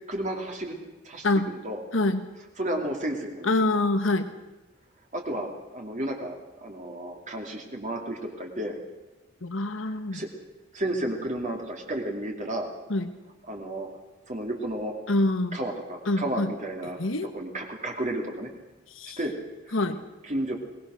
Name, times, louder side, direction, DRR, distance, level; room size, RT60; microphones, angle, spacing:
voice 1, 0.1-0.7 1.0-1.8 2.6-3.5 5.1-8.8 9.8-10.3 10.7-12.7 13.5-13.9 14.3-15.0 15.5-17.0 17.3-18.5 19.2-19.3 19.6-19.7 20.2-20.6, right 1 dB, 40° right, 1 dB, 2.7 m, -32 dB
voice 2, 1.9-2.3 3.4-4.3 9.4-10.2 12.9-13.1 15.1-15.6 16.1-16.5 17.0-17.3 18.9-19.2 19.7-20.0, left 2 dB, 80° left, 9 dB, 1.4 m, -25 dB
22.5 x 20.0 x 6.3 m, 1.1 s
head